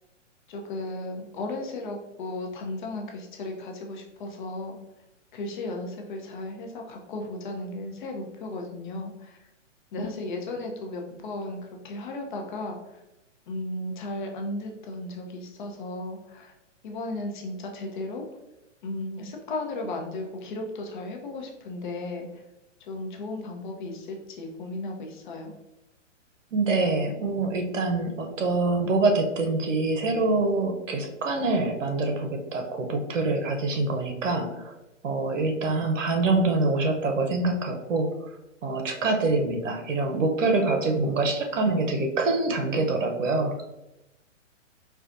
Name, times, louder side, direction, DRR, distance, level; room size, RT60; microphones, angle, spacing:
voice 1, 0.5-4.8 5.3-9.4 9.9-12.8 13.5-16.5 16.8-18.2 18.8-22.4 22.8-25.5, left 2 dB, 40° left, 2 dB, 0.7 m, -35 dB
voice 2, 26.5-34.7 35.0-38.1 38.6-43.6, right 3 dB, 80° right, 4 dB, 0.8 m, -25 dB
4.5 x 2.3 x 2.5 m, 0.92 s
hypercardioid pair, 145°, 38 cm